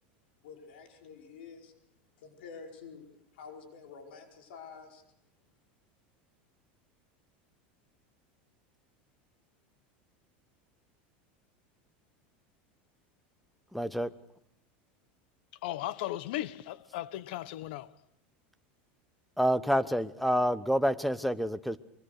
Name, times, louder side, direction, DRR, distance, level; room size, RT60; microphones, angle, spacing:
voice 1, 0.4-1.7 2.2-3.0 3.3-5.0, left 5 dB, 90° left, 5.1 m, -48 dB
voice 2, 13.7-14.1 19.4-21.8, equal, ahead, 0.9 m, -28 dB
voice 3, 15.6-17.9, left 14 dB, 70° left, 1.0 m, -36 dB
23.5 x 23.5 x 6.5 m
supercardioid pair, 150°, 5 cm